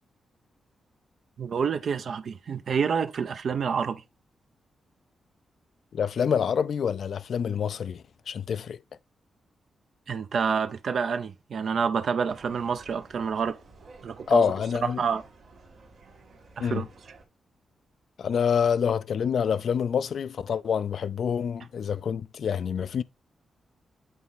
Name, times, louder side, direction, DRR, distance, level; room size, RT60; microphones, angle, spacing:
voice 1, 1.4-4.0 10.1-13.6 14.0-14.5 15.0-15.2 16.6-16.8, right 6 dB, 65° right, 0.6 m, -28 dB
voice 2, 5.9-8.8 14.3-15.0 16.6-16.9 18.2-23.0, left 7 dB, 65° left, 0.4 m, -27 dB
sound 1, 12.3-17.2, right 3 dB, 80° right, 1.9 m, -53 dB
8.2 x 4.1 x 3.6 m
cardioid pair, 85°, 0 cm